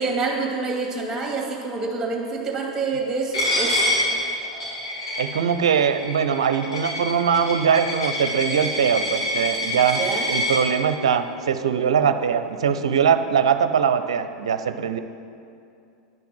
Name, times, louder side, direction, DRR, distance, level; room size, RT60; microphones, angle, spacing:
voice 1, 0.0-3.9 10.0-10.3, right 4 dB, 20° right, 0 dB, 2.3 m, -27 dB
Coin (dropping), 3.3-10.6, left 1 dB, 80° left, 3.0 m, -26 dB
voice 2, 5.2-10.0 10.3-15.0, right 7 dB, 70° right, 9 dB, 0.6 m, -21 dB
10.5 x 5.8 x 7.6 m, 2.5 s
figure-of-eight pair, 90°, 3 cm